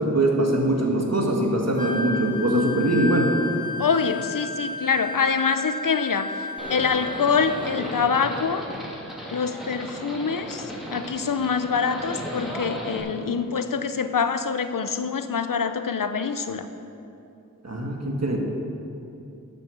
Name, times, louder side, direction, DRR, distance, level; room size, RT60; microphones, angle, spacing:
voice 1, 0.0-3.3 17.6-18.4, right 1 dB, 55° right, 0 dB, 1.9 m, -22 dB
Wind instrument woodwind instrument, 1.8-7.9, left 2 dB, 15° left, 0.8 m, -33 dB
voice 2, 3.8-6.3 6.7-8.6 9.3-10.6 10.9-16.7, left 6 dB, 90° left, 9 dB, 0.6 m, -25 dB
Livestock farm animals working animals, 6.6-13.0, equal, ahead, 2.8 m, -35 dB
11.5 x 6.8 x 7.0 m, 2.8 s
wide cardioid pair, 45°, 32 cm